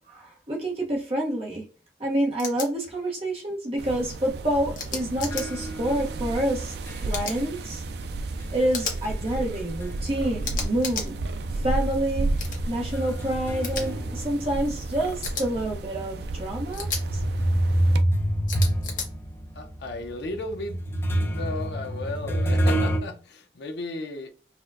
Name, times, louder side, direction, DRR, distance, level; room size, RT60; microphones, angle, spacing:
voice 1, 0.1-1.6 2.0-6.7 7.0-7.8 8.5-11.2 11.6-12.3 12.7-16.9, right 1 dB, 30° right, 0.8 m, -28 dB
sound 1, 2.4-2.7 4.8-5.4 7.1-7.4 8.7-9.0 10.4-11.1 12.4-12.6 13.6-13.8 15.2-15.5 16.7-17.0 18.5-19.1, left 5 dB, 45° left, 0.9 m, -32 dB
sound 2, 3.8-18.0, right 2 dB, 60° right, 0.3 m, -33 dB
sound 3, 5.2-10.2 10.5-15.1 15.7-15.8 16.6-23.0, right 1 dB, 15° left, 0.5 m, -28 dB
voice 2, 19.6-24.3, left 2 dB, 65° left, 0.6 m, -35 dB
4.2 x 2.2 x 2.5 m
head